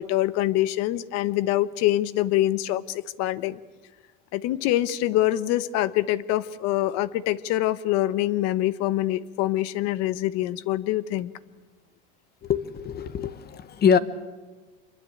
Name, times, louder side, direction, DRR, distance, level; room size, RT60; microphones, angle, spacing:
voice 1, 0.0-3.6 4.3-11.3, left 14 dB, 60° left, 16 dB, 1.1 m, -25 dB
voice 2, 12.4-14.0, left 7 dB, 35° left, 14 dB, 1.3 m, -23 dB
26.0 x 23.0 x 8.5 m, 1.3 s
cardioid pair, 135°, 29 cm